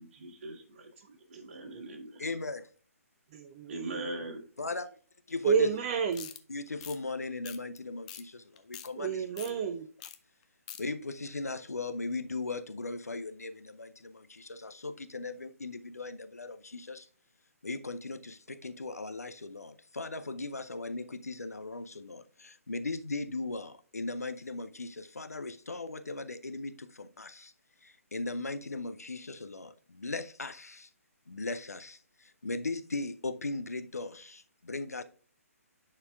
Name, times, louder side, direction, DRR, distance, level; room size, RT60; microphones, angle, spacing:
voice 1, 0.0-2.2 3.7-4.4, right 2 dB, 45° right, 2.0 m, -41 dB
voice 2, 1.3-1.9 3.3-4.1 5.4-6.3 9.0-9.9, right 6 dB, 30° right, 0.4 m, -30 dB
voice 3, 2.2-2.7 4.6-4.9 5.3-5.7 6.5-9.2 10.8-17.1 17.6-27.5 27.8-30.9 31.3-35.0, left 3 dB, 75° left, 0.6 m, -38 dB
sound 1, 6.1-6.4 6.8-7.0 7.4-7.8 8.1-8.2 8.6-8.9 9.4-9.5 10.0-10.2 10.4-10.8, left 11 dB, 30° left, 0.5 m, -44 dB
10.5 x 4.5 x 2.3 m
figure-of-eight pair, 135°, 8 cm